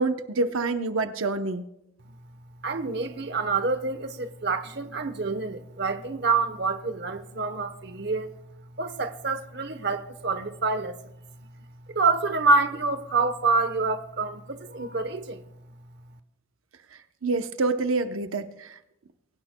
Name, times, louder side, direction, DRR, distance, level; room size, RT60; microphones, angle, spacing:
voice 1, 0.0-1.7 17.2-18.8, right 3 dB, 90° right, 0.8 m, -27 dB
voice 2, 2.6-8.3 8.8-11.0 11.9-15.4, right 3 dB, 55° right, 0.9 m, -27 dB
24.0 x 16.0 x 2.2 m
head